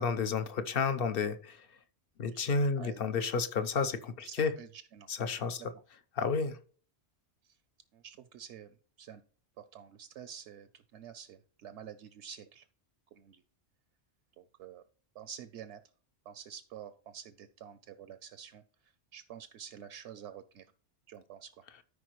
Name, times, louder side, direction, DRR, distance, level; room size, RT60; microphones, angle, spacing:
voice 1, 0.0-1.7 2.2-4.5 5.1-5.6 6.2-6.6, left 5 dB, 60° left, 11 dB, 0.9 m, -31 dB
voice 2, 4.2-5.1 5.6-5.7 7.4-7.6 7.9-9.2 9.6-12.7 13.1-13.4 14.4-14.8 15.1-15.8 16.3-20.7 21.1-21.6, right 8 dB, 80° right, 12 dB, 0.9 m, -49 dB
13.5 x 5.0 x 3.0 m, 0.43 s
omnidirectional pair, 1.2 m